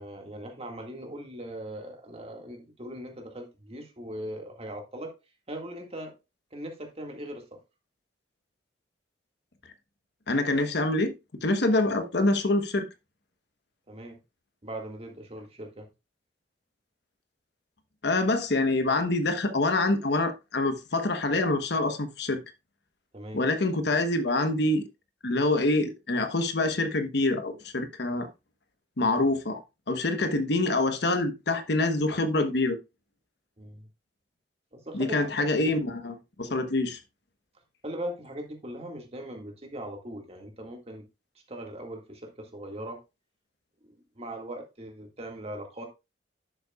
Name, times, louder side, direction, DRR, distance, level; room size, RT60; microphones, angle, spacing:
voice 1, 0.0-5.1 5.5-6.1 6.5-7.4 13.9-14.2 14.6-15.9 23.1-23.4 33.6-33.9 34.7-35.2 35.5-35.8 36.4-36.6 37.8-41.0 41.5-43.0 43.8-45.9, right 1 dB, 35° right, 1.9 m, -40 dB
voice 2, 10.3-11.1 11.4-12.9 18.0-22.4 23.3-24.8 25.2-28.3 29.0-29.6 29.9-32.8 34.9-37.0, left 2 dB, 65° left, 1.1 m, -26 dB
11.5 x 6.7 x 2.4 m
head